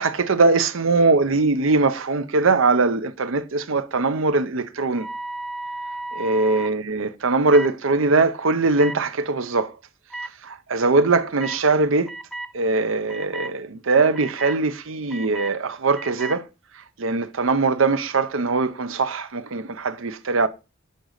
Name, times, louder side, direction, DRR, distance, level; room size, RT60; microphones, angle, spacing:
voice 1, 0.0-5.1 6.1-9.7 10.4-12.1 12.5-16.4 17.0-20.5, right 3 dB, 80° right, 0.7 m, -21 dB
sound 1, 4.9-6.7 7.5-7.7 8.8-9.0 10.1-10.3 11.4-11.6 12.1-12.5 13.1-13.5 14.1-14.6 15.1-15.5 15.9-16.4, right 2 dB, ahead, 0.4 m, -33 dB
6.6 x 3.9 x 6.4 m
head